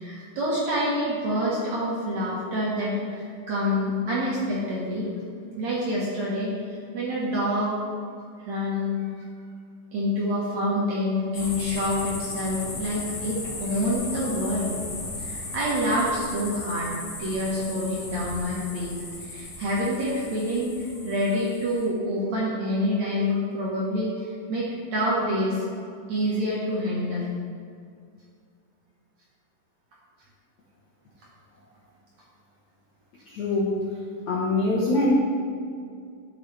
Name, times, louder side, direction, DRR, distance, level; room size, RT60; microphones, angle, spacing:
voice 1, 0.0-5.1 5.6-7.7 8.5-9.2 9.9-14.8 15.2-24.7 24.9-25.6 26.1-27.3, equal, 60° right, -7 dB, 1.8 m, -27 dB
sound 1, 11.3-21.9, left 2 dB, 50° left, 3.0 m, -36 dB
voice 2, 33.3-33.7 34.3-35.2, left 2 dB, 80° left, -7 dB, 1.7 m, -23 dB
11.5 x 8.7 x 3.4 m, 2.2 s
omnidirectional pair, 5.4 m